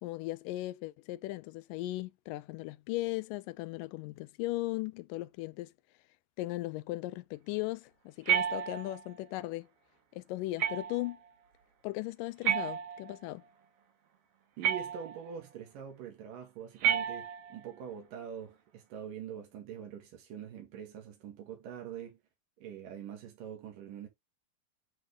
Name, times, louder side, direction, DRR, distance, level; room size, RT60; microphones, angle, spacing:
voice 1, 0.0-5.7 6.4-9.7 10.1-11.2 11.8-13.4, left 18 dB, 90° left, 2.2 m, -37 dB
sound 1, 8.3-9.1 10.6-11.2 12.4-13.3 14.6-15.3 16.8-17.7, right 9 dB, 60° right, 1.7 m, -31 dB
voice 2, 14.6-22.2 22.6-24.1, right 9 dB, 85° right, 3.4 m, -44 dB
9.1 x 3.4 x 3.6 m
omnidirectional pair, 3.8 m